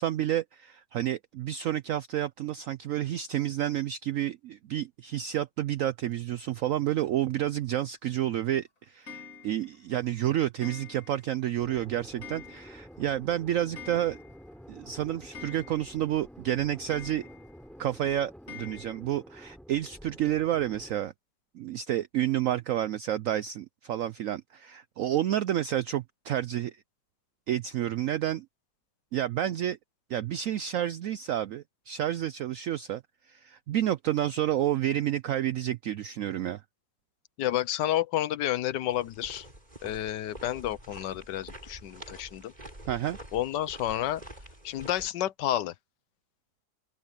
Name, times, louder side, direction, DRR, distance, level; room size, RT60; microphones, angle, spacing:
voice 1, 0.0-14.2 14.7-17.2 17.8-21.1 21.5-26.8 27.5-28.5 29.1-29.8 30.1-33.0 33.3-36.6 42.9-43.2, right 12 dB, 75° right, 0.7 m, -30 dB
Clock, 9.1-9.8 10.6-11.4 11.7-11.8 12.2-13.0 13.2-13.3 13.6-14.5 14.8-14.9 15.3-16.1 16.9-17.6 18.5-19.0, left 5 dB, 45° left, 3.8 m, -46 dB
sound 1, 11.6-21.0, equal, ahead, 3.5 m, -49 dB
voice 2, 37.4-39.5 39.8-42.5 43.3-44.2 44.6-45.7, left 12 dB, 80° left, 1.4 m, -30 dB
sound 2, 38.9-45.1, right 1 dB, 25° right, 7.6 m, -47 dB
open air
omnidirectional pair, 1.9 m